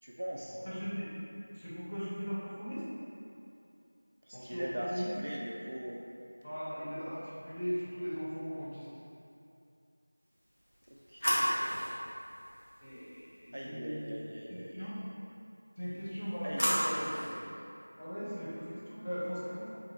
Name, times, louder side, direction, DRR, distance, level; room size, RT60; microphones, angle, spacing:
voice 1, 0.0-0.6 4.2-6.0 10.9-11.9 13.5-14.9 16.4-17.6, equal, 40° right, -3 dB, 0.3 m, -41 dB
voice 2, 0.6-1.1 1.5-2.8 4.3-5.1 6.4-8.9 12.8-15.0 15.8-17.0 18.0-19.7, equal, 20° left, -12 dB, 0.8 m, -39 dB
sound 1, 10.4-13.5 15.9-17.4, equal, 75° left, 1.4 m, -35 dB
4.3 x 3.6 x 3.1 m, 2.7 s
figure-of-eight pair, 175°, 0 cm